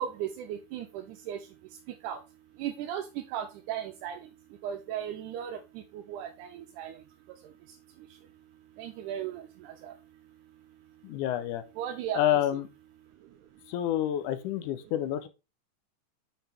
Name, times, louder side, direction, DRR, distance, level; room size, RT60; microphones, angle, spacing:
voice 1, 0.0-1.4 2.0-2.2 2.6-4.2 4.6-5.6 5.9-7.0 8.8-9.9 11.8-12.2, right 10 dB, 80° right, 2.1 m, -36 dB
voice 2, 11.0-11.6 12.1-12.7 13.7-15.3, left 11 dB, 80° left, 2.2 m, -28 dB
6.6 x 6.0 x 3.4 m
omnidirectional pair, 3.6 m